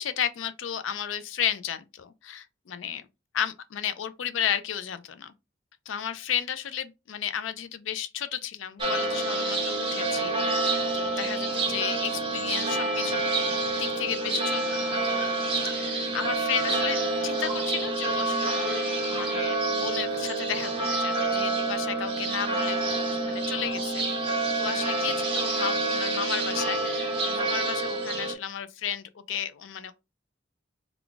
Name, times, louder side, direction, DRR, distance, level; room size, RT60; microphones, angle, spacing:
voice 1, 0.0-3.1 3.3-5.3 5.9-13.2 13.8-15.3 15.7-24.0 24.6-29.9, left 9 dB, 80° left, 0.4 m, -33 dB
sound 1, 8.8-28.3, right 2 dB, 30° right, 1.1 m, -28 dB
3.8 x 2.3 x 3.4 m
head